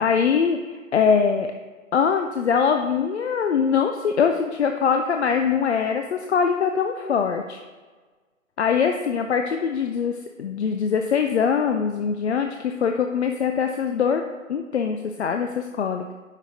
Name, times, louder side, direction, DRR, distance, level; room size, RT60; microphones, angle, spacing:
voice 1, 0.0-1.5 1.9-7.6 8.6-14.2 14.5-16.1, left 6 dB, 55° left, 5 dB, 0.5 m, -22 dB
9.3 x 4.9 x 2.7 m, 1.4 s
figure-of-eight pair, 145°, 41 cm